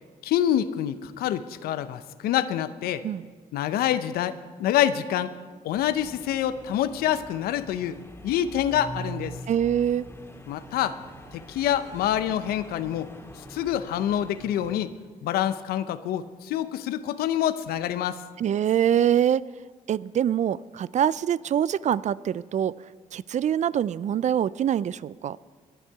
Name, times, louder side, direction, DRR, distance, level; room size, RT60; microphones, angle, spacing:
voice 1, 0.2-3.1 3.5-5.3 5.6-8.0 8.2-9.4 10.5-11.0 11.3-13.1 13.4-14.9 15.2-18.2, left 11 dB, 85° left, 13 dB, 0.6 m, -26 dB
sound 1, 5.7-14.8, right 1 dB, 15° left, 2.1 m, -44 dB
voice 2, 9.5-10.1 18.4-19.4 19.9-22.7 23.1-25.4, right 9 dB, 50° right, 20 dB, 0.4 m, -24 dB
18.0 x 10.0 x 4.6 m, 1.5 s
supercardioid pair, 55°, 15 cm